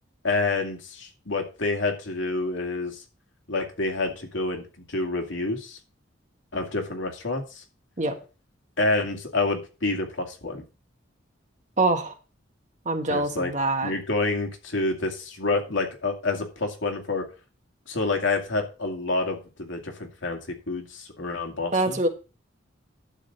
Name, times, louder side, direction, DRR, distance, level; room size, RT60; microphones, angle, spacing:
voice 1, 0.2-3.0 3.5-5.8 6.5-7.6 8.8-10.6 13.1-13.5 13.8-17.3 17.9-20.4 20.7-22.0, left 3 dB, 80° left, 3 dB, 2.3 m, -28 dB
voice 2, 11.8-12.1 12.8-13.9 21.7-22.1, right 2 dB, 40° right, 5 dB, 1.4 m, -24 dB
11.5 x 3.9 x 7.9 m, 0.33 s
head